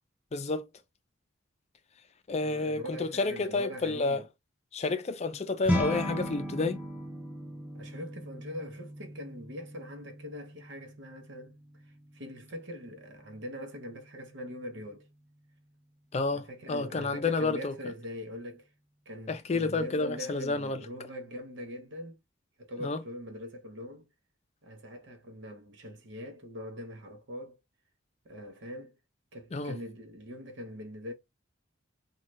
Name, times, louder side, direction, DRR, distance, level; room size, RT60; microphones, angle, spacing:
voice 1, 0.3-0.6 2.3-4.2 4.7-6.8 16.1-17.7 19.3-20.8 22.8-23.0 29.5-29.8, left 3 dB, 35° left, 0.4 m, -30 dB
voice 2, 2.4-4.3 7.7-11.6 12.1-15.1 16.3-18.7 19.1-22.2 22.6-24.1 24.6-27.6 28.2-29.0 29.3-31.1, equal, 65° right, 0.8 m, -42 dB
sound 1, 5.7-15.1, equal, 5° right, 0.7 m, -38 dB
2.7 x 2.3 x 3.1 m
head